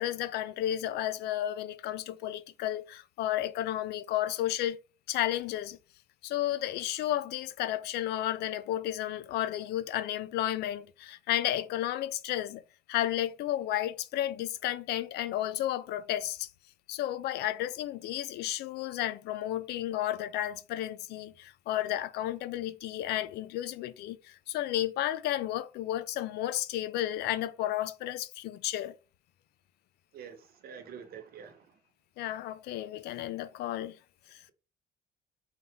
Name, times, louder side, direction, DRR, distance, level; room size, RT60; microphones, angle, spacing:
voice 1, 0.0-4.8 5.1-5.8 6.2-12.6 12.9-16.5 16.9-29.0 32.2-34.0 34.3-34.4, left 13 dB, 75° left, 0.4 m, -32 dB
voice 2, 30.1-31.8, right 7 dB, 65° right, 0.9 m, -47 dB
4.0 x 2.9 x 3.4 m
cardioid pair, 110°, 17 cm